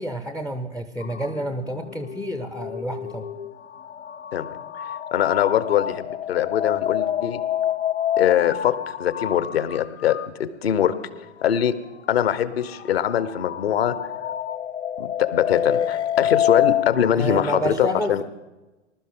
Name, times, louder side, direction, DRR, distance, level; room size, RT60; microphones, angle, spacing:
voice 1, 0.0-3.3 17.1-18.2, equal, 5° left, 9 dB, 0.5 m, -29 dB
sound 1, 1.0-10.3 11.0-11.2 12.7-17.1, left 10 dB, 75° left, 0.6 m, -27 dB
voice 2, 5.1-7.4 8.2-10.9 11.4-11.7 12.1-14.0 15.0-18.2, left 10 dB, 60° left, 14 dB, 1.1 m, -22 dB
20.5 x 12.5 x 3.8 m, 1.1 s
figure-of-eight pair, 100°, 35 cm